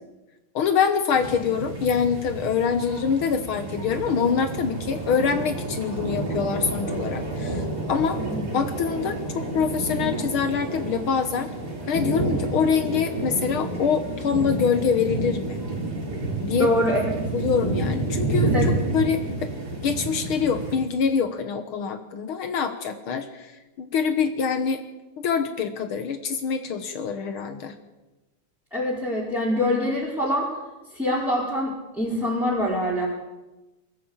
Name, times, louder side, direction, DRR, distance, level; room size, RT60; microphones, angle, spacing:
voice 1, 0.5-8.2 8.5-11.5 11.9-15.6 16.4-16.7 17.3-18.5 18.9-19.5 19.8-23.5 23.8-24.8 25.2-27.8, left 6 dB, 75° left, 8 dB, 2.0 m, -25 dB
sound 1, 1.1-20.8, right 2 dB, 45° right, 4.6 m, -29 dB
voice 2, 16.6-17.0 18.4-18.7 28.7-30.5 30.9-33.1, left 1 dB, ahead, -6 dB, 4.5 m, -24 dB
22.0 x 15.0 x 8.8 m, 1.1 s
omnidirectional pair, 2.4 m